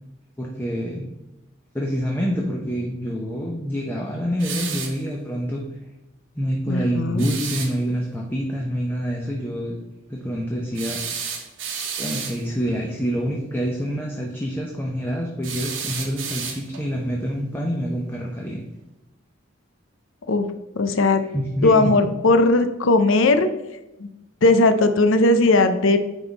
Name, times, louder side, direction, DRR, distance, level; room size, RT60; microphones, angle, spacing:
voice 1, 0.4-1.1 1.7-5.6 6.3-9.8 10.1-11.0 12.0-18.6 21.3-21.8, equal, 10° left, -1 dB, 0.7 m, -26 dB
sound 1, 4.4-5.0 7.2-7.7 10.7-12.4 15.4-16.9, right 6 dB, 75° right, 1.1 m, -31 dB
voice 2, 6.7-7.3 20.3-20.5 20.7-21.2 21.6-23.5 24.0-24.1 24.4-26.0, left 2 dB, 75° left, 9 dB, 0.6 m, -18 dB
9.7 x 3.7 x 4.0 m, 0.96 s
head